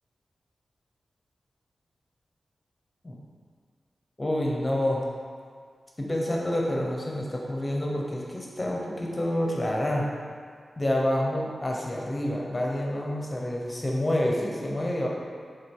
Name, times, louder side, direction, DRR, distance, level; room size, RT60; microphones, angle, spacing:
voice 1, 4.2-5.0 6.0-10.1 10.8-15.1, left 1 dB, 15° left, -2 dB, 1.0 m, -28 dB
7.6 x 3.6 x 5.5 m, 2.1 s
wide cardioid pair, 175°, 0 cm